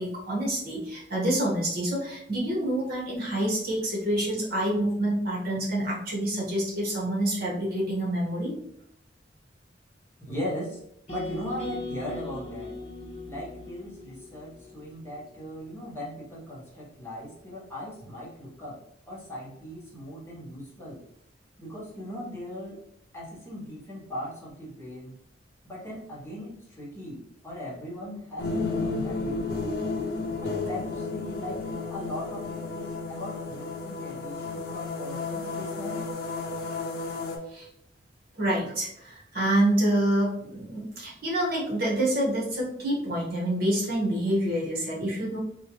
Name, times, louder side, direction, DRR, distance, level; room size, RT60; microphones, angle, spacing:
voice 1, 0.0-8.5 37.5-37.7 38.4-45.4, right 1 dB, 55° right, -5 dB, 1.4 m, -27 dB
voice 2, 10.3-10.8 11.1-12.8 13.2-18.8 19.1-21.0 21.6-22.8 23.1-25.2 25.6-29.4 30.4-36.1, equal, 15° left, -7 dB, 1.1 m, -38 dB
sound 1, 11.1-15.2, left 2 dB, 35° left, 1.4 m, -39 dB
sound 2, 28.4-37.4, left 3 dB, 60° left, 0.6 m, -32 dB
3.5 x 2.7 x 3.0 m, 0.73 s
head